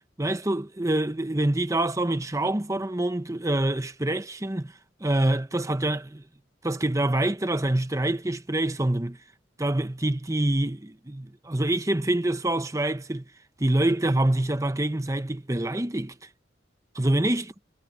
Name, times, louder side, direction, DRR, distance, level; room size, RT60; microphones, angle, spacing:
voice 1, 0.2-4.7 5.0-6.2 6.6-9.2 9.6-13.2 13.6-16.1 16.9-17.4, right 1 dB, 15° right, 0.9 m, -26 dB
head